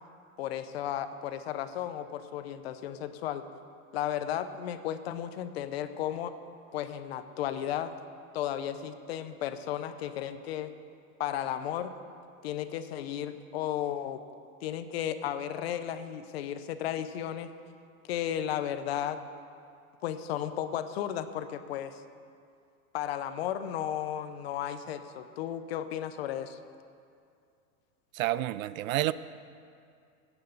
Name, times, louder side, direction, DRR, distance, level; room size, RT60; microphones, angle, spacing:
voice 1, 0.4-3.5 3.9-6.3 6.7-7.9 8.3-10.7 11.2-12.0 12.4-14.2 14.6-17.5 18.1-19.2 20.0-22.0 22.9-26.6, left 10 dB, 45° left, 11 dB, 0.6 m, -34 dB
voice 2, 28.1-29.1, right 15 dB, 65° right, 17 dB, 0.5 m, -29 dB
13.5 x 9.1 x 6.8 m, 2.4 s
supercardioid pair, 175°, 43 cm